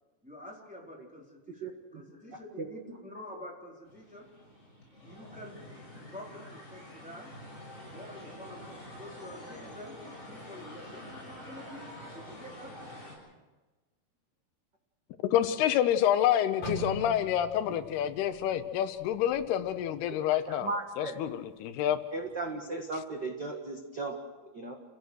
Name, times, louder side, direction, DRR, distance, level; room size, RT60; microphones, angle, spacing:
voice 1, 0.2-1.7 1.9-4.3 5.0-5.5 6.1-7.3 7.9-11.9 12.1-12.8, left 1 dB, ahead, -3 dB, 3.4 m, -47 dB
voice 2, 1.6-2.0 2.6-3.0 20.1-20.2 20.5-21.3 22.1-24.8, right 3 dB, 50° right, 2 dB, 1.3 m, -37 dB
sound 1, 3.9-13.1, left 1 dB, 15° left, 7.1 m, -47 dB
voice 3, 15.3-20.7 21.0-22.0, left 11 dB, 80° left, 11 dB, 2.8 m, -28 dB
sound 2, 16.6-20.7 21.0-21.3 21.9-22.3, equal, 50° left, 8.4 m, -43 dB
29.0 x 16.5 x 6.4 m, 1.2 s
omnidirectional pair, 4.6 m